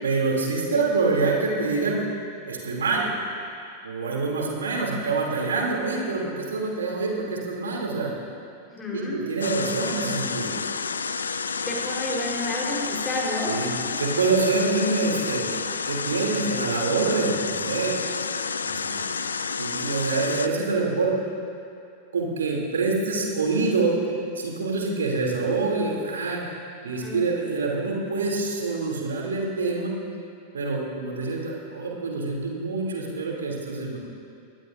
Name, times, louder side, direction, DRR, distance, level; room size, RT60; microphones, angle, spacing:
voice 1, 0.0-2.0 2.5-3.1 3.8-8.1 8.9-10.6 13.5-13.7 14.0-15.4 15.9-18.0 18.6-19.1 19.6-21.2 22.1-24.0 24.4-26.4 26.8-29.9 30.5-34.0, right 3 dB, 70° right, -1 dB, 2.7 m, -26 dB
voice 2, 8.7-9.2 11.7-13.5 13.8-13.9 27.0-27.3, left 2 dB, 20° left, -3 dB, 3.7 m, -30 dB
sound 1, 9.4-20.5, left 5 dB, 75° left, 0.5 m, -30 dB
23.0 x 18.5 x 2.6 m, 2.5 s
figure-of-eight pair, 90°, 0 cm